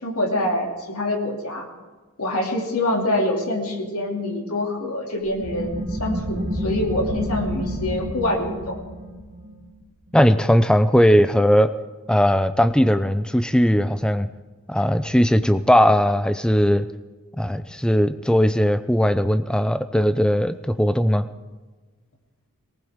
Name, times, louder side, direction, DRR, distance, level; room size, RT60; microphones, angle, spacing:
voice 1, 0.0-1.7 2.2-8.8, left 1 dB, 80° left, 1 dB, 2.7 m, -25 dB
sound 1, 5.3-10.6, right 1 dB, 40° right, 3.0 m, -30 dB
voice 2, 10.1-11.7 12.1-14.3 14.7-16.9 17.4-21.3, equal, 5° left, 11 dB, 0.4 m, -18 dB
19.0 x 19.0 x 3.6 m, 1.3 s
head